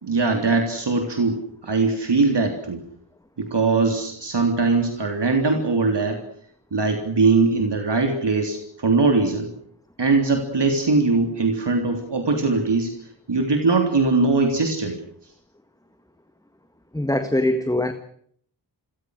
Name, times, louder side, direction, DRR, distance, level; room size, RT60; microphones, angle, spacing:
voice 1, 0.0-2.8 3.4-6.2 6.7-9.5 10.0-12.9 13.3-15.0, right 3 dB, 75° right, 4 dB, 3.6 m, -21 dB
voice 2, 16.9-17.9, left 1 dB, 10° left, 8 dB, 1.7 m, -22 dB
29.0 x 22.5 x 6.6 m, 0.64 s
wide cardioid pair, 85°, 41 cm